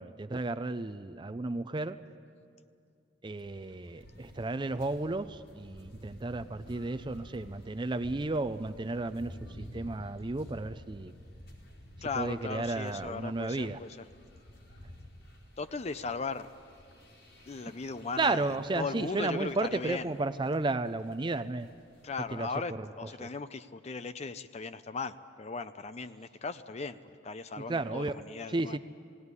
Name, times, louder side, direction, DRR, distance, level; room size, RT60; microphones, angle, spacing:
voice 1, 0.0-2.0 3.2-11.1 12.2-13.8 18.2-21.7 22.3-22.5 22.8-22.9 23.2-23.3 27.7-28.2 28.5-28.8, right 2 dB, 25° right, 12 dB, 0.5 m, -33 dB
sound 1, 3.4-22.4, equal, 85° left, 4.3 m, -52 dB
voice 2, 12.0-14.0 15.6-16.5 17.5-20.1 22.0-28.8, left 4 dB, 35° left, 11 dB, 0.5 m, -38 dB
19.5 x 17.0 x 9.7 m, 2.4 s
head